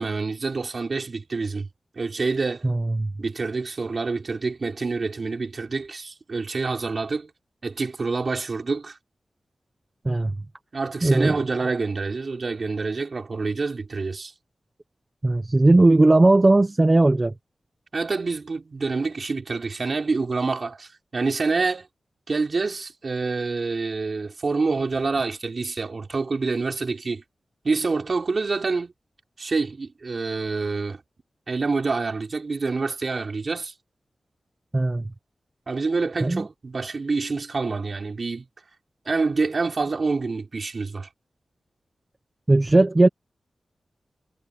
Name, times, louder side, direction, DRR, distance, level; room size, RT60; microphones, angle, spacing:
voice 1, 0.0-1.7 1.9-2.6 3.2-7.3 7.6-9.0 10.7-14.3 17.9-21.9 22.3-27.2 27.6-28.9 29.4-31.0 31.5-33.7 35.7-38.4 39.0-41.1, right 4 dB, 50° right, 4.7 m, -27 dB
voice 2, 2.6-3.1 10.0-10.3 11.0-11.4 15.2-17.3 34.7-35.0 36.2-36.5 42.5-43.1, right 2 dB, 25° right, 0.7 m, -18 dB
wide cardioid pair, 105°, 0 cm